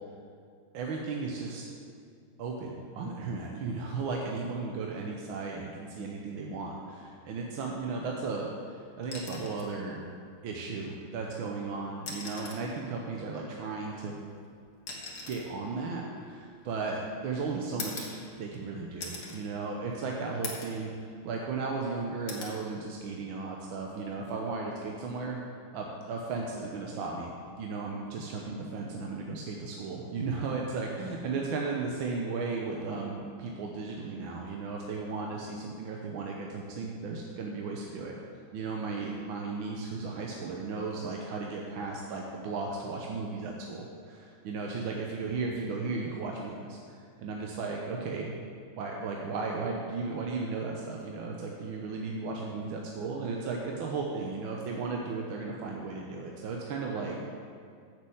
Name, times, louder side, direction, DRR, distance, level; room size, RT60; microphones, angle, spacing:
voice 1, 0.7-1.7 2.4-10.0 10.4-14.3 15.3-18.1 18.4-25.4 25.7-27.3 27.6-38.2 38.5-48.4 48.8-57.2, right 4 dB, 70° right, -1 dB, 1.5 m, -35 dB
sound 1, 9.0-9.7 11.2-11.3 11.9-12.7 13.9-17.0 17.8-18.6 19.0-19.4 19.9-20.0 20.4-20.8 21.3-21.9 22.3-22.6 24.1-24.3, left 3 dB, 60° left, 2.1 m, -42 dB
7.5 x 6.7 x 7.8 m, 2.3 s
omnidirectional pair, 2.4 m